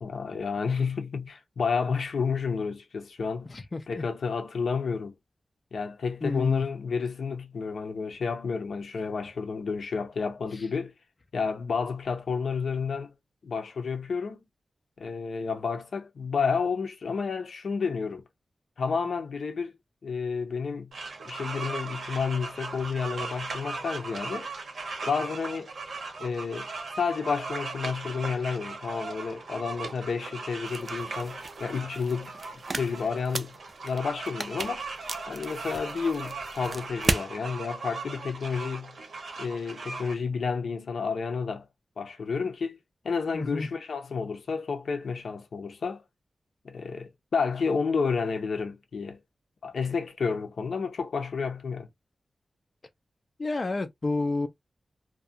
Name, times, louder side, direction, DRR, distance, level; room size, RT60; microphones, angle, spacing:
voice 1, 0.0-3.5 3.9-5.1 5.7-10.9 11.3-13.1 13.4-14.4 15.0-18.2 18.8-19.7 20.0-20.9 21.3-24.5 25.1-25.7 26.2-32.3 32.7-33.6 33.8-34.9 35.3-39.0 39.4-41.6 42.0-42.8 43.0-46.0 46.6-49.2 49.6-51.9, left 5 dB, 85° left, 0.6 m, -30 dB
voice 2, 3.5-4.0 6.2-6.6 10.5-10.7 43.3-43.7 53.4-54.5, left 3 dB, 40° left, 0.3 m, -30 dB
sound 1, 20.9-40.1, right 3 dB, 75° right, 0.8 m, -38 dB
sound 2, 30.7-37.3, right 3 dB, 45° right, 0.3 m, -35 dB
2.4 x 2.2 x 2.5 m
wide cardioid pair, 130°, 0 cm